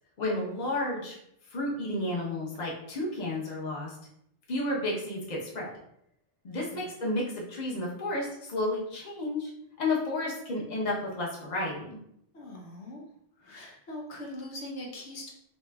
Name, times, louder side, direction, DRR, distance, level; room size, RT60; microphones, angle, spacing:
voice 1, 0.2-1.2 1.5-4.0 4.5-5.7 6.4-9.5 9.8-12.0, left 2 dB, 40° left, -3 dB, 0.9 m, -32 dB
voice 2, 12.3-13.1 13.4-15.3, left 1 dB, 80° left, -2 dB, 1.1 m, -41 dB
4.2 x 3.0 x 2.3 m, 0.73 s
omnidirectional pair, 1.2 m